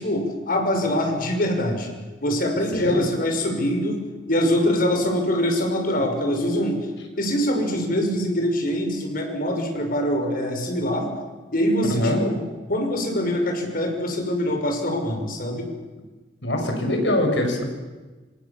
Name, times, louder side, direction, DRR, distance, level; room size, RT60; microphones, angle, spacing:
voice 1, 0.0-1.9 2.2-6.9 7.2-11.1 11.5-12.4 12.7-15.7, equal, 55° left, 4 dB, 6.2 m, -24 dB
voice 2, 2.7-3.1 11.8-12.2 16.4-17.7, left 1 dB, 80° left, 3 dB, 6.9 m, -23 dB
28.0 x 26.0 x 7.4 m, 1.2 s
head